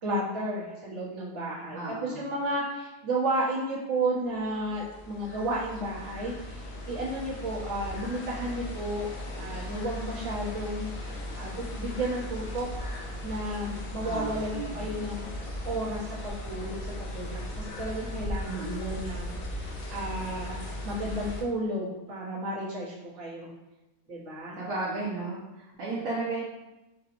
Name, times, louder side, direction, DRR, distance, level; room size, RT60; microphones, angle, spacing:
voice 1, 0.0-9.1 9.4-10.9 11.3-23.5 24.1-24.5, right 1 dB, 55° right, -8 dB, 1.4 m, -33 dB
voice 2, 1.7-2.3 14.0-14.9 18.5-19.0 24.6-26.4, right 3 dB, 70° right, -8 dB, 1.2 m, -34 dB
sound 1, 4.3-21.4, left 1 dB, 70° left, 1.1 m, -37 dB
4.9 x 2.3 x 3.0 m, 1.0 s
omnidirectional pair, 1.6 m